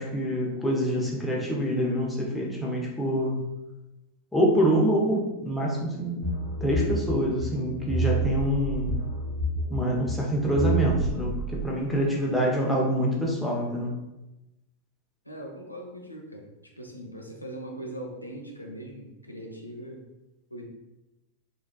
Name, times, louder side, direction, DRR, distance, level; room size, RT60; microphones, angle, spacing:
voice 1, 0.0-3.4 4.3-8.9 9.7-13.9, equal, 5° left, -3 dB, 0.7 m, -26 dB
sound 1, 6.2-11.6, right 2 dB, 50° right, 0.6 m, -29 dB
voice 2, 15.2-20.0 20.5-20.7, right 1 dB, 85° left, 0 dB, 0.4 m, -40 dB
3.2 x 2.4 x 2.2 m, 0.99 s
figure-of-eight pair, 90°, 0 cm